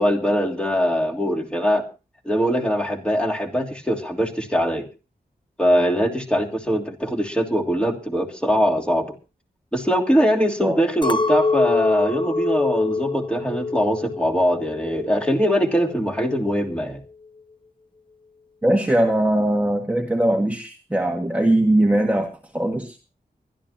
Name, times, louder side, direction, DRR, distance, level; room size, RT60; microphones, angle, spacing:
voice 1, 0.0-1.8 2.2-4.8 5.6-9.1 9.7-17.0, equal, 5° left, 2 dB, 2.8 m, -22 dB
Chink clink, 11.0-15.4 15.8-16.4, left 4 dB, 30° left, 0.7 m, -25 dB
voice 2, 18.6-22.3 22.5-23.0, right 1 dB, 10° right, 2 dB, 1.7 m, -20 dB
24.0 x 12.0 x 2.8 m, 0.32 s
wide cardioid pair, 105°, 17 cm